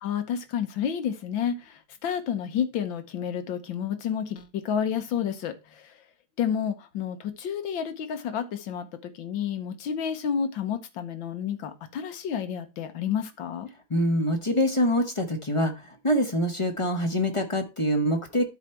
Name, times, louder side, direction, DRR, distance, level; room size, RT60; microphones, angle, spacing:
voice 1, 0.0-5.9 6.4-13.7, left 8 dB, 75° left, 1.7 m, -30 dB
voice 2, 13.9-18.5, equal, 30° left, 0.6 m, -25 dB
12.0 x 4.1 x 4.3 m
omnidirectional pair, 2.1 m